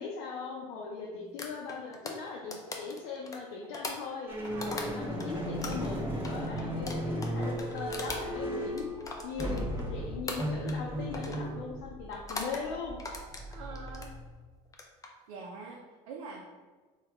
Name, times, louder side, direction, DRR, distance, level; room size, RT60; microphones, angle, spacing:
voice 1, 0.0-4.3 4.7-8.9 9.2-13.0, left 5 dB, 70° left, -2 dB, 0.5 m, -39 dB
sound 1, 1.4-5.3 5.6-9.9 10.3-10.9 11.1-11.5 12.1-12.6 13.0-14.1 14.6-15.1, left 2 dB, 20° left, 0.5 m, -40 dB
sound 2, 4.3-14.4, equal, 10° right, 1.1 m, -36 dB
voice 2, 4.5-4.9 10.9-11.8 13.5-14.1 15.3-16.5, right 4 dB, 85° right, -1 dB, 0.5 m, -45 dB
3.5 x 2.3 x 3.4 m, 1.4 s
supercardioid pair, 85°, 18 cm